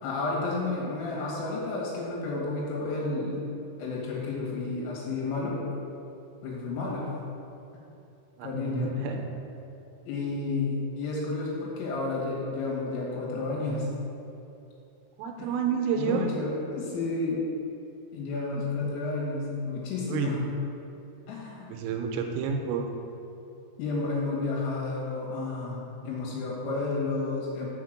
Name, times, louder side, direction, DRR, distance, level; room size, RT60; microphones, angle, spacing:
voice 1, 0.0-3.4 3.8-5.6 6.4-7.1 8.4-9.0 10.1-13.9 15.4-15.5 15.9-17.5 18.1-20.4 21.3-21.7 23.8-27.7, left 3 dB, 80° left, -4 dB, 4.1 m, -31 dB
voice 2, 8.4-9.2 15.2-16.3 20.1-20.3 21.7-22.9, right 6 dB, 85° right, 3 dB, 3.2 m, -29 dB
6.7 x 5.7 x 6.3 m, 2.7 s
omnidirectional pair, 6.0 m